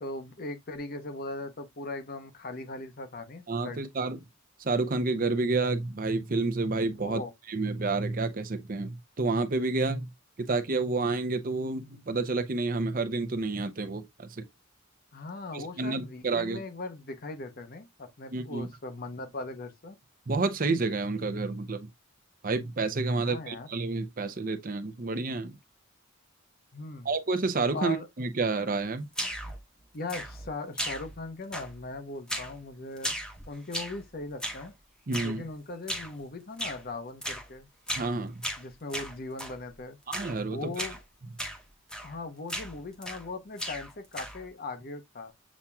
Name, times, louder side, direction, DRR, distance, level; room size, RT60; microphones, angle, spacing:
voice 1, 0.0-3.8 7.0-7.3 15.1-20.0 23.1-23.7 26.7-27.1 27.7-28.1 29.9-33.2 33.5-34.7 35.2-37.7 38.6-40.0 40.5-41.0 42.0-45.3, left 2 dB, 45° left, 0.8 m, -39 dB
voice 2, 3.5-4.2 4.6-7.2 7.5-10.1 10.4-14.4 15.5-16.6 18.3-18.7 20.3-21.9 22.4-25.5 27.0-29.1 35.1-35.4 38.0-38.4 40.1-40.7, right 3 dB, 45° right, 0.6 m, -29 dB
sound 1, 29.1-29.6 30.1-30.5 30.8-31.2 31.5-31.9 32.3-32.6 33.0-34.0 34.4-34.7 35.1-35.4 35.9-36.2 36.6-36.8 37.2-37.5 37.9-38.1 38.4-39.6 40.1-40.4 40.7-41.0 41.4-41.6 41.9-42.2 42.5-43.3 43.6-44.5, equal, 5° left, 0.9 m, -36 dB
7.2 x 2.8 x 2.3 m
head